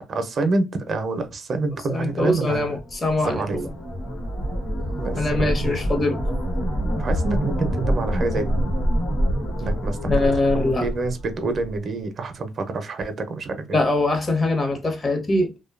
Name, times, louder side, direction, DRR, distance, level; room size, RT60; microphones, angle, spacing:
voice 1, 0.1-2.8 3.2-3.6 5.0-5.5 7.0-8.7 9.6-13.8, right 3 dB, 50° right, 0.5 m, -27 dB
voice 2, 1.9-3.7 5.2-6.2 10.0-10.9 13.7-15.5, left 2 dB, 35° left, 0.8 m, -22 dB
sound 1, 2.8-11.8, equal, 75° left, 1.1 m, -26 dB
2.6 x 2.2 x 2.3 m
cardioid pair, 90°, 0 cm